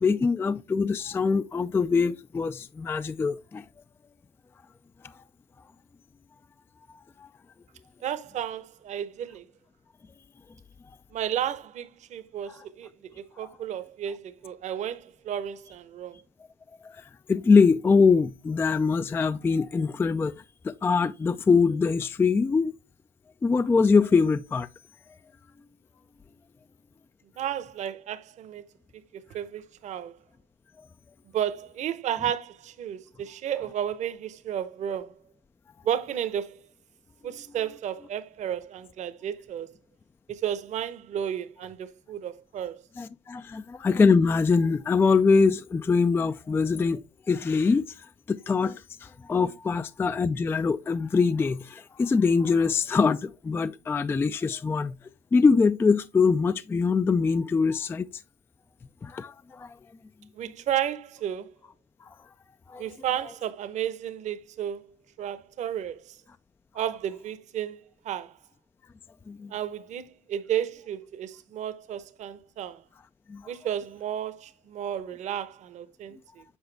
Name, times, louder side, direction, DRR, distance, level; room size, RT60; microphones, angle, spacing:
voice 1, 0.0-3.6 7.2-7.3 12.5-12.6 13.4-13.5 16.8-20.3 20.6-22.7 23.4-24.7 43.0-47.0 47.3-55.0 55.3-58.1 59.0-59.8 62.0-62.1 62.7-62.9 69.3-69.5 73.3-73.5, left 4 dB, 15° left, 0.3 m, -23 dB
voice 2, 8.0-9.4 11.1-16.2 27.4-28.6 29.1-30.2 31.3-35.2 35.8-36.6 37.2-39.7 40.3-42.8 60.4-61.5 62.8-64.8 65.2-66.1 66.7-68.3 69.5-72.8 73.5-76.4, right 10 dB, 50° right, 0.9 m, -33 dB
8.1 x 4.8 x 3.3 m
supercardioid pair, 95°, 16 cm